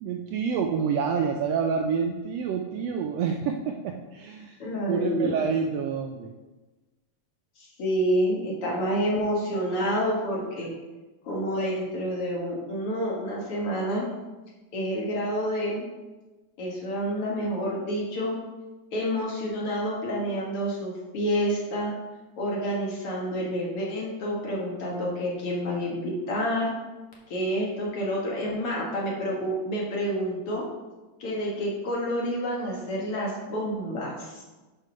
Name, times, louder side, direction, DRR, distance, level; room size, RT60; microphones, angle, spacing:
voice 1, 0.0-4.6 4.9-6.3, right 6 dB, 80° right, 3 dB, 1.5 m, -28 dB
voice 2, 4.6-5.4 7.6-10.7 11.2-14.0 14.7-15.8 16.6-18.4 18.9-21.9 22.4-26.7 27.3-30.7 31.2-34.4, equal, 55° left, -3 dB, 2.2 m, -28 dB
6.4 x 5.7 x 5.1 m, 1.2 s
omnidirectional pair, 3.3 m